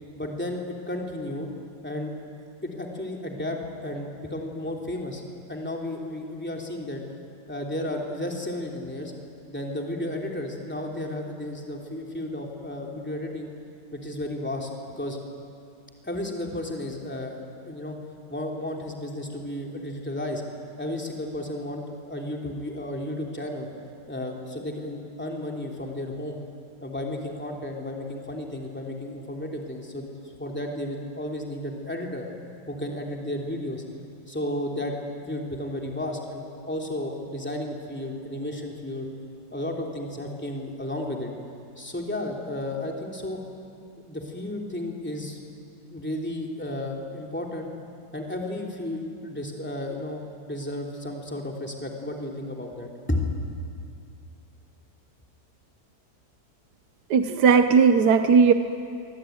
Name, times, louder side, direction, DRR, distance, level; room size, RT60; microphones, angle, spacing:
voice 1, 0.1-1.5 1.8-2.1 2.6-7.0 7.5-9.1 9.4-13.5 13.9-14.7 15.0-15.2 16.0-18.0 18.3-20.4 20.8-23.7 24.1-26.4 26.8-30.1 30.4-32.3 32.7-33.8 34.3-39.1 39.5-41.3 41.8-43.4 44.0-45.4 45.8-47.7 48.1-53.3, left 1 dB, 5° left, 0 dB, 3.1 m, -33 dB
voice 2, 57.1-58.5, right 6 dB, 80° right, 8 dB, 1.5 m, -17 dB
24.5 x 24.0 x 9.3 m, 2.5 s
omnidirectional pair, 1.7 m